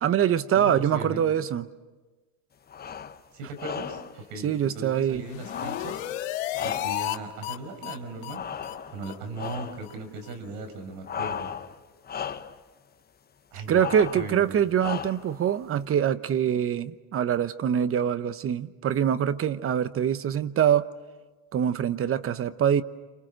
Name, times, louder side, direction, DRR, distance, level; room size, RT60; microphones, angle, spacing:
voice 1, 0.0-1.7 4.4-5.2 13.7-20.9 21.5-22.8, right 9 dB, 35° right, 1.1 m, -24 dB
voice 2, 0.6-1.2 3.3-4.0 4.3-6.0 6.6-8.4 8.9-11.5 13.5-14.6, right 3 dB, 65° right, 5.7 m, -38 dB
sound 1, 2.7-3.2 3.6-4.2 5.4-7.2 8.3-9.1 9.4-9.9 11.0-11.8 12.0-12.6 13.7-14.4 14.8-15.4, left 7 dB, 25° left, 1.0 m, -35 dB
sound 2, 5.1-7.2 7.4-7.6 7.8-8.0 8.2-8.4 8.6-8.8 9.0-9.2 9.4-9.5 9.8-9.9 10.2-10.3, left 15 dB, 80° left, 1.8 m, -33 dB
29.0 x 27.5 x 6.4 m
supercardioid pair, 100°, 39 cm